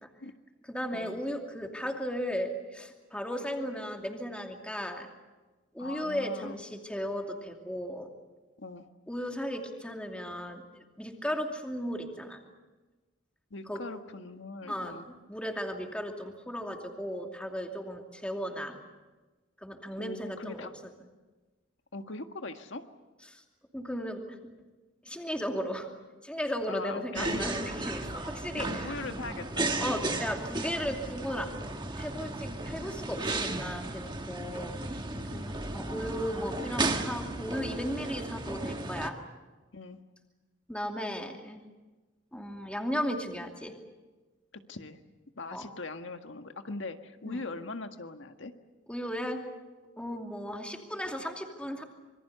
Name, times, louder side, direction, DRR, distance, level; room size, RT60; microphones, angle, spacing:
voice 1, 0.7-5.1 5.7-8.1 9.1-12.4 13.7-13.8 14.7-18.8 19.6-20.7 23.3-23.4 23.7-24.4 25.0-25.9 26.2-28.9 29.8-31.6 31.9-34.8 35.3-39.1 40.7-41.6 42.3-43.8 45.5-45.7 47.2-47.4 48.9-49.4 50.0-51.8, equal, 5° left, 2 dB, 2.6 m, -36 dB
voice 2, 5.8-6.6 8.6-8.9 13.5-15.1 20.0-20.7 21.9-22.8 26.7-27.5 28.6-30.2 34.4-34.7 35.1-35.5 39.7-40.0 44.7-45.0 45.4-48.5, left 3 dB, 75° left, 6 dB, 1.7 m, -41 dB
sound 1, 27.2-39.1, right 2 dB, 25° right, 1.5 m, -34 dB
26.5 x 23.5 x 6.9 m, 1.2 s
head